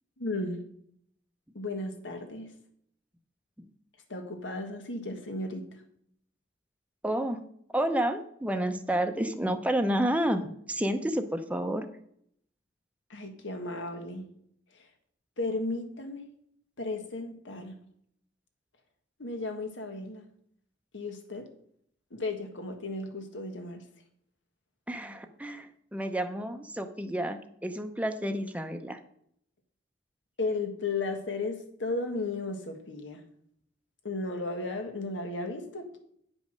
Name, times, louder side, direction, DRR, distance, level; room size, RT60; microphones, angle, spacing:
voice 1, 0.2-0.6 1.5-2.5 4.1-5.7 13.1-14.3 14.7-14.9 15.4-16.3 16.8-17.8 19.2-20.2 20.9-21.5 22.1-23.8 30.4-33.2 34.0-36.0, left 2 dB, 85° left, 5 dB, 1.6 m, -35 dB
voice 2, 7.0-7.4 7.7-10.4 10.7-11.9 24.9-29.0, right 1 dB, 10° right, 6 dB, 0.7 m, -30 dB
9.2 x 5.3 x 6.4 m, 0.68 s
head